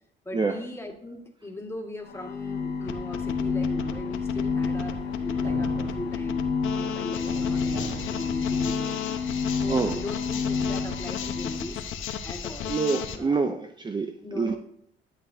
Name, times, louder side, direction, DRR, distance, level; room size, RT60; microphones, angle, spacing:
voice 1, 0.2-6.4 6.8-9.2 9.6-11.9 12.2-12.7 13.1-13.4 14.2-14.6, left 2 dB, 10° left, 1 dB, 1.9 m, -39 dB
sound 1, 2.1-11.7, left 5 dB, 55° left, 1.2 m, -29 dB
sound 2, 2.9-13.2, left 8 dB, 80° left, 0.9 m, -34 dB
sound 3, 4.5-9.3, right 2 dB, 55° right, 1.8 m, -43 dB
voice 2, 9.7-10.0 12.7-14.6, right 4 dB, 25° right, 7 dB, 0.5 m, -26 dB
12.0 x 8.0 x 2.7 m, 0.71 s
cardioid pair, 90°, 20 cm